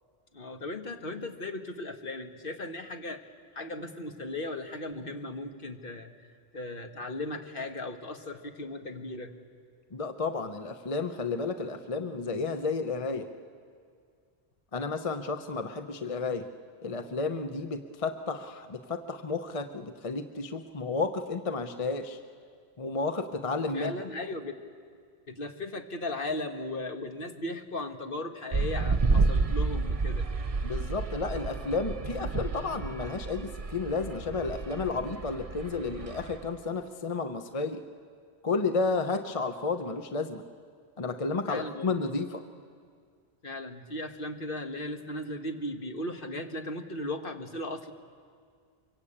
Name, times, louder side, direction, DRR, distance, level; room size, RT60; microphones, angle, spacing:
voice 1, 0.3-3.3 3.5-6.1 6.5-9.3 23.7-24.5 25.3-30.3 41.5-42.1 43.4-47.9, left 2 dB, 55° left, 5 dB, 1.5 m, -37 dB
voice 2, 9.9-13.3 14.7-16.5 16.8-22.2 22.8-23.9 30.6-37.8 38.4-40.4 41.0-42.4, left 4 dB, 35° left, 8 dB, 0.9 m, -32 dB
sound 1, 28.5-36.6, right 3 dB, 35° right, 0.9 m, -30 dB
24.0 x 23.5 x 8.7 m, 2.1 s
omnidirectional pair, 1.1 m